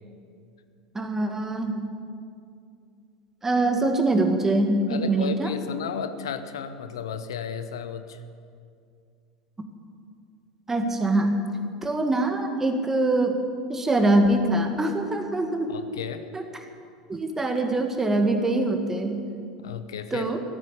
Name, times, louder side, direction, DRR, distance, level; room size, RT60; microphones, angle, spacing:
voice 1, 0.9-1.9 3.4-5.5 10.7-11.4 11.8-13.4 13.7-15.7 16.3-16.4 17.1-19.3 20.1-20.4, right 2 dB, 15° right, 5 dB, 1.9 m, -23 dB
voice 2, 4.9-8.2 15.7-16.3 19.6-20.3, left 7 dB, 70° left, 10 dB, 0.8 m, -33 dB
14.5 x 9.3 x 9.9 m, 2.4 s
figure-of-eight pair, 75°, 2 cm